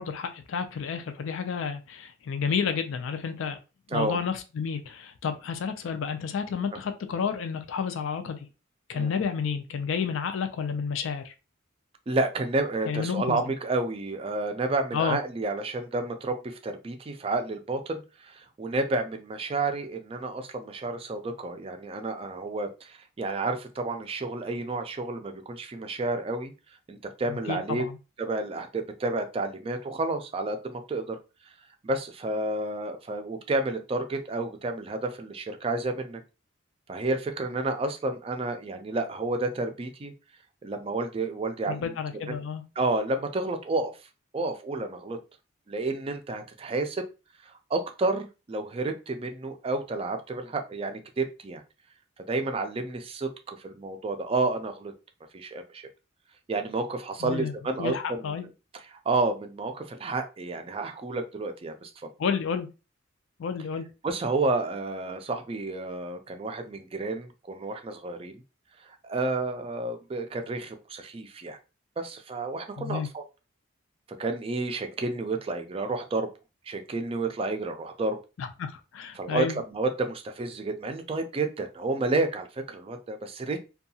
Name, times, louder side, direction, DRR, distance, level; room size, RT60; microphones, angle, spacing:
voice 1, 0.0-3.6 3.9-8.5 8.9-11.3 12.9-13.4 14.9-15.2 27.3-28.0 41.7-42.6 57.2-57.5 57.8-58.5 62.2-62.7 63.4-63.9 72.8-73.1 78.4-79.6, left 6 dB, 70° left, 8 dB, 0.4 m, -31 dB
voice 2, 12.1-26.5 26.9-27.8 28.2-31.2 31.8-36.2 36.9-40.1 40.6-41.9 42.3-42.4 42.8-43.9 44.3-45.2 45.7-47.1 47.7-51.6 52.3-54.9 55.3-55.8 56.5-58.4 58.9-62.1 64.0-68.4 68.9-71.6 72.0-73.2 74.2-76.3 76.7-78.2 79.2-83.6, right 2 dB, 30° right, 6 dB, 0.3 m, -30 dB
2.7 x 2.3 x 2.7 m, 0.30 s
head